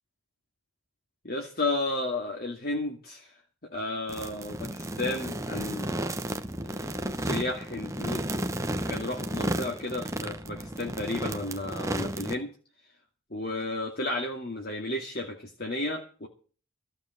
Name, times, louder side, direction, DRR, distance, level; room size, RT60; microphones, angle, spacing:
voice 1, 1.2-3.4 3.7-5.9 6.6-8.2 8.9-12.5 13.3-16.3, left 2 dB, 45° left, 2 dB, 2.3 m, -33 dB
sound 1, 4.1-12.4, right 1 dB, 15° right, 1.0 m, -33 dB
15.0 x 7.1 x 9.1 m, 0.38 s
head